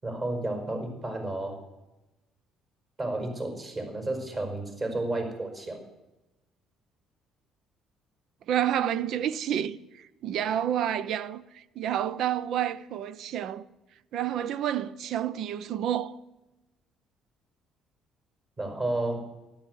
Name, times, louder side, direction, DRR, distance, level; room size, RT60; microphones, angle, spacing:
voice 1, 0.0-1.6 3.0-5.8 18.6-19.3, right 2 dB, 30° right, 5.3 m, -32 dB
voice 2, 8.5-13.6 14.1-16.2, right 10 dB, 65° right, 0.7 m, -29 dB
13.5 x 11.5 x 8.0 m
cardioid pair, 105°, 0 cm